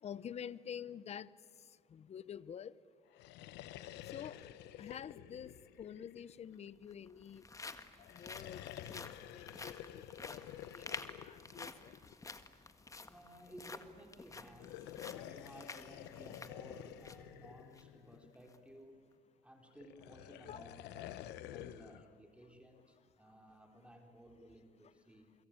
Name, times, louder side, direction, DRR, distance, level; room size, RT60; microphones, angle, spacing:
voice 1, 0.0-1.3 1.9-2.7 4.1-4.4 4.8-5.5 5.8-7.4 8.1-10.4 10.7-12.0 20.4-20.6, left 8 dB, 40° left, 18 dB, 0.7 m, -48 dB
sound 1, 3.1-6.7 8.0-12.3 14.5-18.5 19.8-22.1, left 13 dB, 90° left, 1.0 m, -50 dB
sound 2, 5.7-5.8 6.8-17.3 17.7-17.8 18.3-18.6, left 3 dB, 20° left, 1.5 m, -50 dB
voice 2, 13.0-19.1 19.4-25.3, right 1 dB, 5° right, 3 dB, 3.7 m, -57 dB
29.0 x 22.5 x 8.8 m, 2.1 s
cardioid pair, 110°, 17 cm